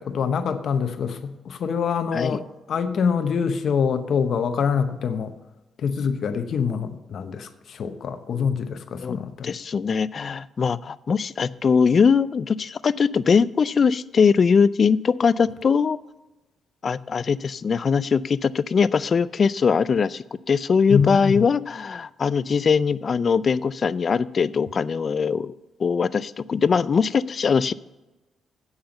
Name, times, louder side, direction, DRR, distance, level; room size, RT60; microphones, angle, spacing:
voice 1, 0.0-2.4 2.7-5.3 5.8-9.5 20.9-21.5, left 6 dB, 65° left, 9 dB, 0.8 m, -25 dB
voice 2, 9.4-16.0 16.8-27.7, left 5 dB, 45° left, 18 dB, 0.4 m, -21 dB
8.8 x 5.6 x 7.7 m, 1.1 s
cardioid pair, 85°, 0 cm